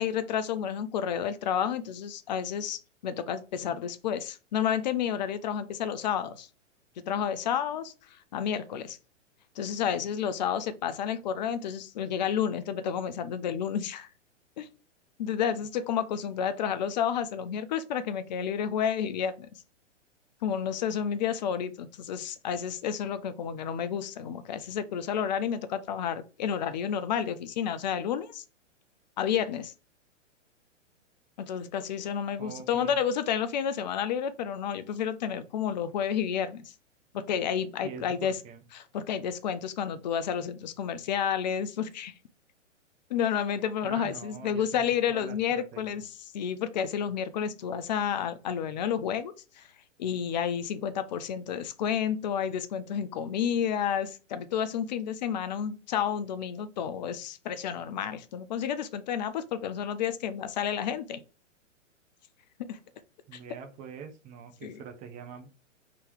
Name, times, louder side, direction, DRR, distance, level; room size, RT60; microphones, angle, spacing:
voice 1, 0.0-6.5 7.1-7.9 8.3-9.0 9.6-14.1 14.6-14.7 15.2-19.5 20.4-28.4 29.2-29.7 31.4-36.7 37.1-38.4 38.7-42.1 43.1-46.0 46.3-49.7 50.0-61.2 62.7-62.8 63.3-63.4 64.6-64.8, left 8 dB, 35° left, 0.4 m, -30 dB
voice 2, 32.4-33.0 37.8-38.6 43.8-46.0 63.3-65.5, right 6 dB, 20° right, 0.6 m, -44 dB
3.7 x 2.8 x 3.4 m
hypercardioid pair, 120°, 38 cm